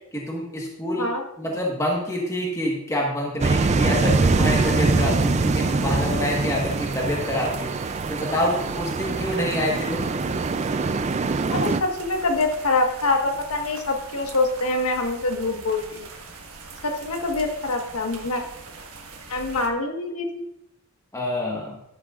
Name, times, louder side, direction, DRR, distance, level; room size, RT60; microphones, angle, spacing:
voice 1, 0.1-1.1 1.4-10.1 21.1-21.8, left 1 dB, 15° left, -2 dB, 1.4 m, -27 dB
sound 1, 3.4-11.8, right 3 dB, 30° right, 0.4 m, -23 dB
sound 2, 4.1-19.7, right 3 dB, 70° right, 1.5 m, -41 dB
voice 2, 11.5-16.1 16.8-18.4 19.3-20.4, left 2 dB, 80° left, 3 dB, 1.4 m, -25 dB
11.5 x 11.0 x 2.5 m, 0.77 s
head